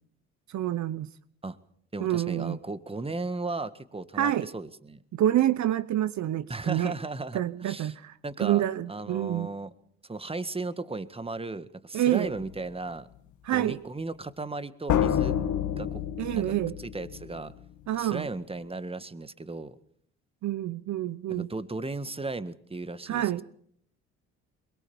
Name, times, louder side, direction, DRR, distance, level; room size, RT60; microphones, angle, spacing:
voice 1, 0.5-1.1 2.0-2.6 4.1-4.5 5.1-6.9 7.3-9.5 11.9-12.3 13.4-13.8 16.2-16.8 17.9-18.3 20.4-21.5 23.1-23.4, right 12 dB, 60° right, 16 dB, 0.9 m, -27 dB
voice 2, 1.9-5.0 6.5-7.9 8.2-8.6 8.9-9.7 10.0-13.1 13.5-15.4 15.8-16.0 16.3-16.5 16.8-17.5 17.9-19.8 21.3-23.3, right 3 dB, 15° right, 13 dB, 1.7 m, -35 dB
sound 1, 12.2-12.5 14.9-17.5, left 10 dB, 65° left, 2.2 m, -28 dB
23.0 x 22.0 x 7.1 m, 0.66 s
supercardioid pair, 65°, 32 cm